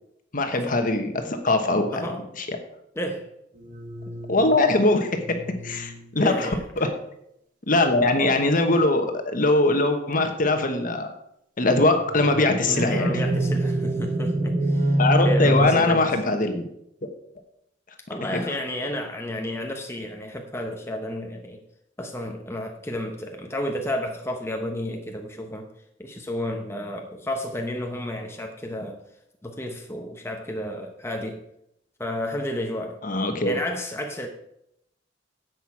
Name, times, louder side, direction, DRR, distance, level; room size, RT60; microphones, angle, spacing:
voice 1, 0.3-2.0 2.4-2.5 4.3-6.5 6.8-6.9 7.7-11.1 11.6-13.2 15.0-16.7 18.3-18.4 33.0-33.5, left 2 dB, 45° left, 6 dB, 1.3 m, -22 dB
voice 2, 1.9-2.3 2.9-3.3 4.1-4.2 6.2-6.6 12.6-15.0 15.2-16.1 18.1-21.6 22.0-25.7 26.0-29.0 29.4-31.4 32.0-33.0 33.4-34.3, left 1 dB, 15° left, 2 dB, 0.9 m, -32 dB
sound 1, 3.7-6.0 12.0-15.6, right 1 dB, 45° right, 1.7 m, -25 dB
10.5 x 8.0 x 4.8 m, 0.77 s
head